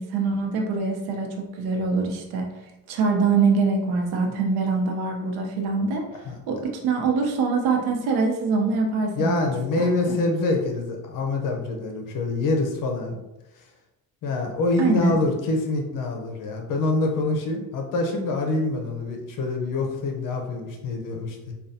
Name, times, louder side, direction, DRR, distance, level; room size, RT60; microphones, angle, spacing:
voice 1, 0.0-2.5 2.9-6.1 6.5-9.5 9.8-10.2 14.8-15.1, right 4 dB, 80° right, 2 dB, 0.8 m, -24 dB
voice 2, 9.1-13.2 14.2-21.5, left 2 dB, 60° left, 3 dB, 0.7 m, -25 dB
4.9 x 2.4 x 2.7 m, 0.95 s
cardioid pair, 110°, 38 cm